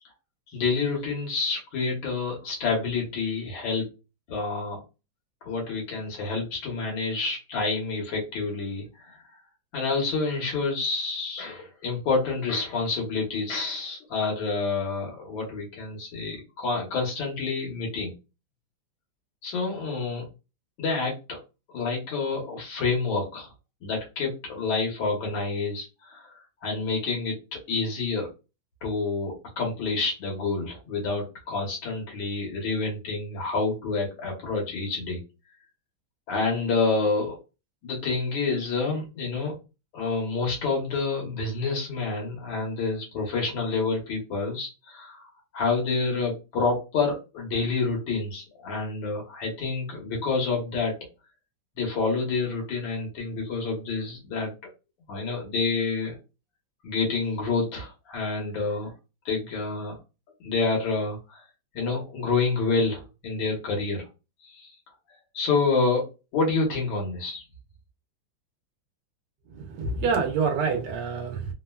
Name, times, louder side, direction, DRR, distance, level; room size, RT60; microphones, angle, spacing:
voice 1, 0.5-3.9 4.3-4.8 5.4-9.2 9.7-18.1 19.4-20.3 20.8-21.4 21.7-23.5 23.8-28.3 28.8-35.2 36.3-37.4 37.8-39.5 39.9-50.9 51.8-54.5 55.1-56.1 56.8-58.9 59.3-60.0 60.4-61.4 61.7-64.1 64.4-64.8 65.3-66.1 66.3-67.4, left 4 dB, 75° left, 1.7 m, -28 dB
voice 2, 69.5-71.5, right 5 dB, 70° right, 1.2 m, -27 dB
3.7 x 2.1 x 2.2 m
omnidirectional pair, 2.1 m